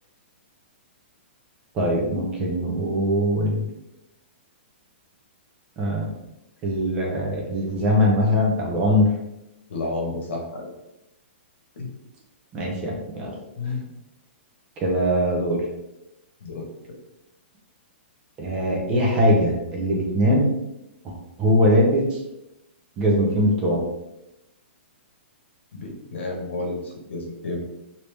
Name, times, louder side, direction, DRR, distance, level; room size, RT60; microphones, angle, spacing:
voice 1, 1.7-3.6 5.8-6.0 6.6-9.1 12.5-13.3 14.8-15.6 18.4-20.5 21.0-22.2 23.0-23.8, equal, 15° right, -2 dB, 0.5 m, -21 dB
voice 2, 9.7-10.7 11.8-11.9 13.6-13.8 16.4-16.7 25.7-27.6, left 2 dB, 75° left, 0 dB, 1.1 m, -31 dB
3.2 x 2.7 x 3.2 m, 0.91 s
hypercardioid pair, 175°, 7 cm